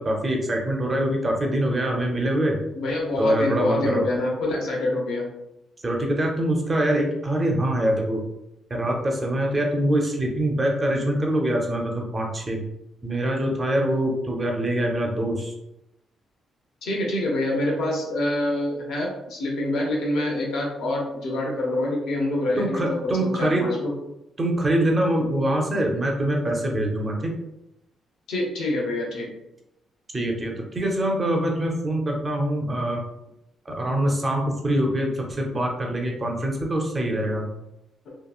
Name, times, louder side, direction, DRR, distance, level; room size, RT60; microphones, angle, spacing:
voice 1, 0.0-2.6 3.2-4.0 5.8-8.2 8.7-12.6 13.0-15.5 22.6-23.7 24.4-27.4 30.1-33.0 33.7-37.5, right 1 dB, 20° right, 1 dB, 0.4 m, -24 dB
voice 2, 2.7-5.3 16.8-23.9 28.3-29.3 38.1-38.2, left 1 dB, 75° left, -1 dB, 0.8 m, -26 dB
2.9 x 2.6 x 2.3 m, 0.87 s
cardioid pair, 175°, 0 cm